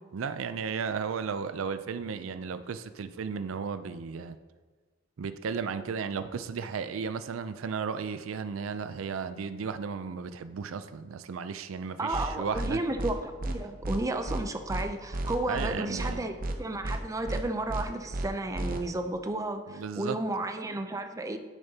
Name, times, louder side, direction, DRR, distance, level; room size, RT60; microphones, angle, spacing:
voice 1, 0.1-4.4 5.2-12.8 15.5-16.2 19.7-20.2, right 6 dB, 90° right, 11 dB, 0.4 m, -34 dB
voice 2, 12.0-21.4, right 2 dB, 15° right, 6 dB, 0.4 m, -33 dB
sound 1, 12.1-12.3 12.5-12.7 13.0-13.1 13.4-13.6 13.8-14.0 14.3-14.4 14.7-14.8 15.1-15.7 16.0-16.1 16.4-16.6 16.8-17.0 17.3-17.4 17.7-17.8 18.1-18.3 18.5-18.8, right 1 dB, 45° right, 0.8 m, -32 dB
10.5 x 6.6 x 2.8 m, 1.3 s
head